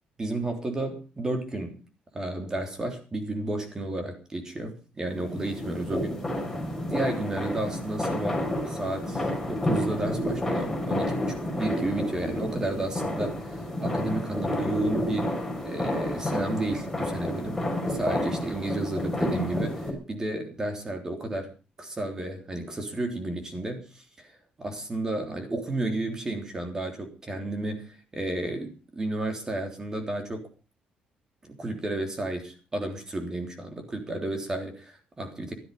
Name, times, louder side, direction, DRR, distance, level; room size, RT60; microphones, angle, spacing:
voice 1, 0.2-1.8 2.1-6.2 6.8-17.6 17.8-21.5 21.8-30.5 31.4-35.5, right 2 dB, 20° right, 5 dB, 3.4 m, -32 dB
sound 1, 5.1-19.9, left 1 dB, 5° left, 6.2 m, -30 dB
16.0 x 12.5 x 5.3 m, 0.34 s
cardioid pair, 130°, 3 cm